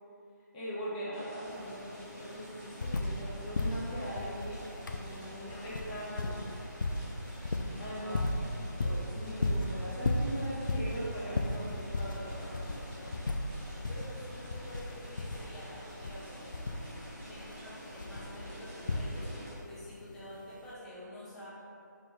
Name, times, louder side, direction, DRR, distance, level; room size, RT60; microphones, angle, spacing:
voice 1, 0.5-6.4 7.8-8.2 8.8-13.2, equal, 20° left, -9 dB, 1.0 m, -41 dB
sound 1, 1.1-19.5, equal, 20° right, 1.1 m, -49 dB
sound 2, 1.5-1.6 1.8-3.3 3.5-19.5 20.6-20.7, left 2 dB, 85° left, 0.4 m, -35 dB
voice 2, 5.1-5.7 8.0-8.7 13.9-16.6 17.3-21.5, left 1 dB, 5° left, -10 dB, 0.5 m, -49 dB
4.1 x 3.2 x 3.4 m, 2.7 s
figure-of-eight pair, 155°, 10 cm